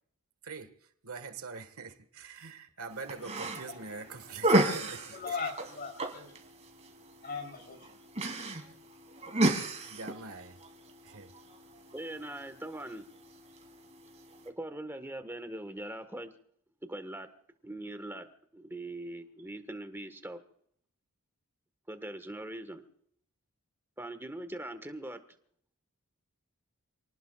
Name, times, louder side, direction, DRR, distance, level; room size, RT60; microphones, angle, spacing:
voice 1, 1.0-5.4 9.8-10.6 11.0-11.3, right 4 dB, 75° right, 1.7 m, -44 dB
sound 1, 2.9-14.5, right 1 dB, 30° right, 2.8 m, -34 dB
voice 2, 3.7-4.1 5.1-6.3 7.2-8.0, left 5 dB, 40° left, 3.9 m, -39 dB
voice 3, 11.9-13.1 14.4-16.3 16.9-17.3 17.6-18.3 18.5-20.4 21.9-22.8 24.0-25.2, right 1 dB, 10° right, 1.5 m, -41 dB
28.5 x 19.0 x 2.4 m
head